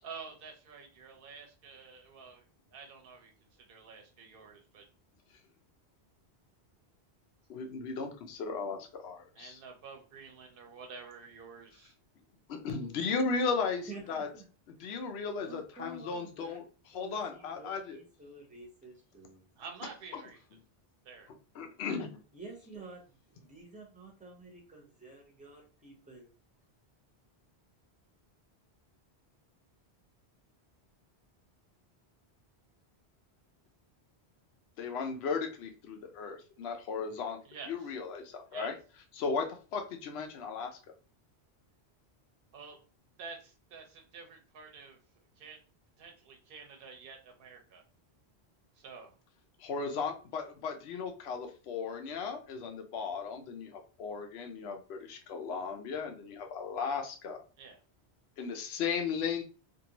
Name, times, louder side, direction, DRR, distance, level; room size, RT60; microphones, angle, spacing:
voice 1, 0.0-2.4 2.7-4.8 9.3-12.0 19.5-20.4 21.0-21.3 37.4-37.9 38.5-38.7 42.5-42.8 43.2-45.0 45.4-45.6 46.0-47.8 48.7-49.1 57.6-57.8, right 5 dB, 60° right, 2 dB, 0.9 m, -49 dB
voice 2, 7.5-9.6 12.5-14.3 14.8-18.0 20.1-20.2 21.5-22.2 34.8-37.4 37.7-38.7 39.2-40.8 49.6-57.4 58.4-59.4, left 5 dB, 75° left, 4 dB, 0.9 m, -36 dB
voice 3, 13.8-14.4 15.4-16.6 16.9-19.4 22.3-26.3, right 2 dB, 10° right, 0 dB, 0.8 m, -50 dB
2.7 x 2.5 x 2.8 m, 0.35 s
omnidirectional pair, 1.1 m